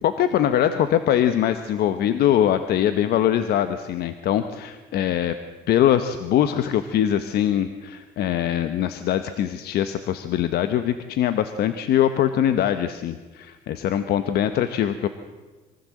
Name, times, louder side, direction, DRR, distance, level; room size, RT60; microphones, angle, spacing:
voice 1, 0.0-5.3 5.7-15.1, left 10 dB, 70° left, 10 dB, 1.1 m, -22 dB
23.5 x 15.0 x 7.7 m, 1.3 s
cardioid pair, 110°, 17 cm